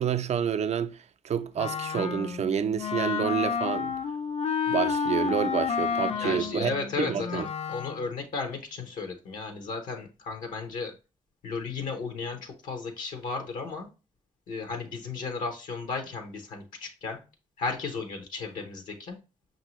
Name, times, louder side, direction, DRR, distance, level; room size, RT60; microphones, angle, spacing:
voice 1, 0.0-4.0 4.7-6.7 7.0-7.5, right 8 dB, 55° right, 0.4 m, -28 dB
Wind instrument woodwind instrument, 1.6-8.1, left 6 dB, 50° left, 0.4 m, -30 dB
voice 2, 6.1-10.9 11.4-13.9 14.5-17.2 17.6-19.2, left 4 dB, 80° left, 0.8 m, -34 dB
5.3 x 2.7 x 3.0 m
supercardioid pair, 50°, 13 cm